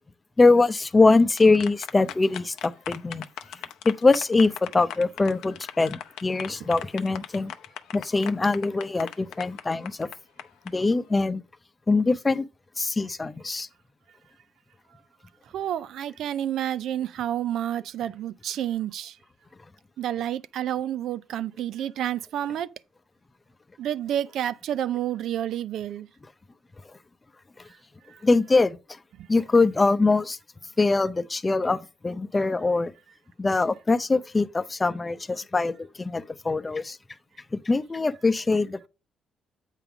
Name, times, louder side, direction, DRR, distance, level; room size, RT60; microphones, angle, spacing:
voice 1, 0.4-3.2 3.9-7.5 7.9-10.1 10.7-11.4 11.9-12.4 12.8-13.7 28.2-28.8 29.3-30.4 30.8-32.9 33.4-37.0 37.5-38.9, left 3 dB, 25° left, 0.6 m, -23 dB
sound 1, 0.9-10.7, left 10 dB, 90° left, 0.6 m, -39 dB
voice 2, 15.5-19.1 20.0-22.7 23.8-26.1, right 11 dB, 75° right, 0.4 m, -29 dB
8.3 x 3.6 x 5.9 m
cardioid pair, 90°, 0 cm